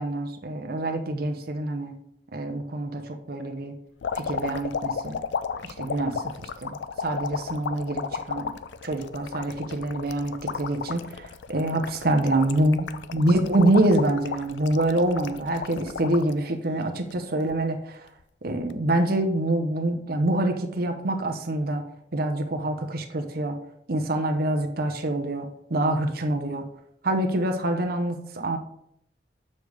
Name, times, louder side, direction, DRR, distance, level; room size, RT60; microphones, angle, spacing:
voice 1, 0.0-2.0 2.3-3.7 4.2-5.2 5.6-8.5 8.8-18.1 18.4-21.8 22.1-23.6 23.9-26.7 27.0-28.6, right 1 dB, 60° right, 5 dB, 0.8 m, -26 dB
water bubbles, 4.0-16.3 16.8-17.6 18.5-18.7, left 6 dB, 75° left, 0.4 m, -33 dB
6.8 x 6.5 x 3.5 m, 0.74 s
head